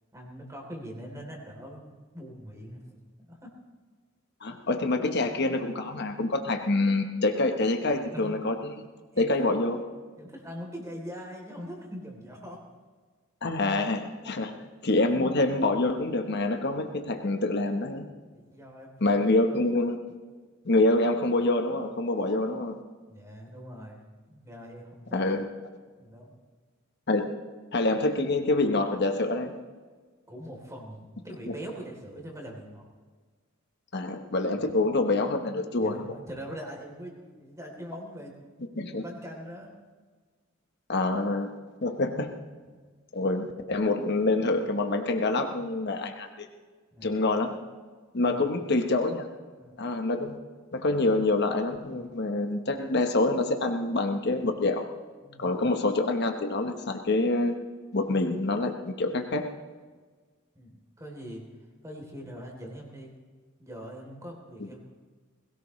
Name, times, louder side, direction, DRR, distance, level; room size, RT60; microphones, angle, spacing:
voice 1, 0.1-3.5 8.1-8.4 9.1-9.3 10.2-12.6 14.1-14.6 18.3-19.1 23.1-25.2 26.0-26.4 30.3-32.9 35.7-38.3 38.7-39.7 42.6-43.0 46.9-47.2 48.2-48.5 49.5-49.8 55.2-55.5 60.5-61.4 61.8-63.1 63.6-64.8, equal, 15° right, 0 dB, 3.3 m, -42 dB
voice 2, 4.4-8.7 9.1-9.8 13.4-18.1 19.0-20.0 20.6-22.8 25.1-25.4 27.1-27.3 27.7-29.5 33.9-35.9 38.8-39.0 40.9-41.5 41.8-42.3 43.1-46.5 47.0-47.6 48.1-49.3 49.8-50.4 50.7-54.9 55.4-57.5 57.9-59.4, left 2 dB, 55° left, 4 dB, 1.1 m, -26 dB
21.5 x 17.5 x 3.2 m, 1.4 s
head